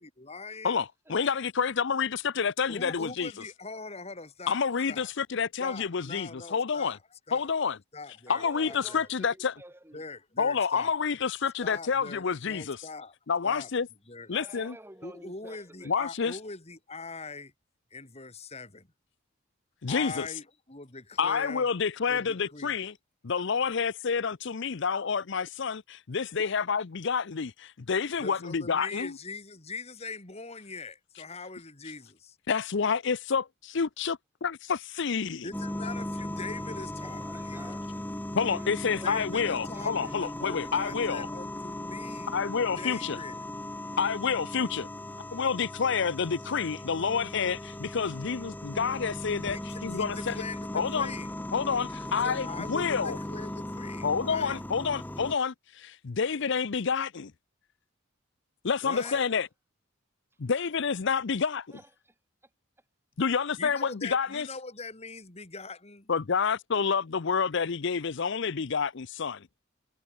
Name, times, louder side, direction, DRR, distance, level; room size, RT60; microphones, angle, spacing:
voice 1, 0.0-0.8 2.7-4.6 4.9-5.1 5.6-7.0 7.3-7.5 7.9-9.1 9.9-10.9 11.6-13.1 13.4-13.7 14.1-14.3 15.0-17.5 17.9-18.9 19.9-21.7 22.1-22.7 28.2-32.4 35.4-37.8 39.0-42.4 42.8-43.5 49.5-51.3 52.1-54.6 58.8-59.2 63.6-66.1, left 3 dB, 30° left, 2.8 m, -42 dB
voice 2, 0.6-3.3 4.5-7.0 7.3-7.8 8.3-9.5 10.4-12.9 13.3-13.9 14.3-14.7 15.9-16.4 19.8-20.3 21.2-22.9 23.2-29.2 32.5-35.5 38.3-41.3 42.3-43.2 44.0-44.9 45.3-49.6 49.8-50.4 50.7-51.1 51.5-53.2 54.0-57.3 58.6-59.5 60.4-61.7 63.2-64.5 66.1-69.5, left 6 dB, 60° left, 0.6 m, -29 dB
voice 3, 8.3-10.1 14.2-15.9 36.9-38.1 38.4-40.2 59.0-59.5 61.7-62.1 62.4-62.5 63.2-63.3, right 1 dB, 10° right, 3.1 m, -50 dB
sound 1, 35.5-55.4, left 1 dB, 10° left, 0.8 m, -38 dB
head